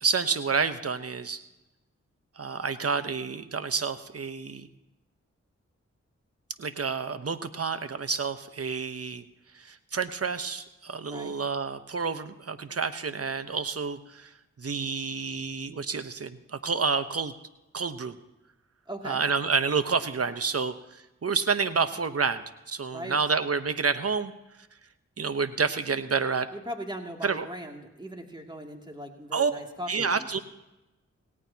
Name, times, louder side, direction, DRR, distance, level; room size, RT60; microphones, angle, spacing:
voice 1, 0.0-1.4 2.4-4.7 6.6-9.2 9.5-14.3 14.6-17.3 17.7-18.1 19.0-24.3 25.2-26.5 27.2-27.5 29.3-29.6 29.9-30.4, right 5 dB, 55° right, 10 dB, 1.1 m, -29 dB
voice 2, 18.9-19.2 22.9-23.2 26.5-30.4, equal, 15° right, 2 dB, 2.7 m, -39 dB
18.5 x 17.5 x 2.9 m, 0.99 s
cardioid pair, 40°, 29 cm